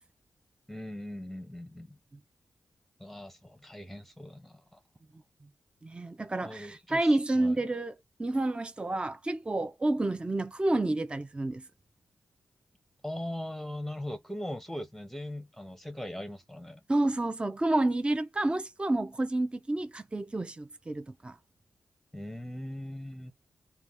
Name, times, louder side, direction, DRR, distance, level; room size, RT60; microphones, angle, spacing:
voice 1, 0.7-2.0 3.0-4.8 6.4-7.6 13.0-16.8 22.1-23.3, left 1 dB, 5° left, 0.8 m, -40 dB
voice 2, 5.8-7.9 8.2-11.6 16.9-21.4, right 2 dB, 20° right, 0.5 m, -29 dB
2.7 x 2.3 x 3.5 m
cardioid pair, 70°, 5 cm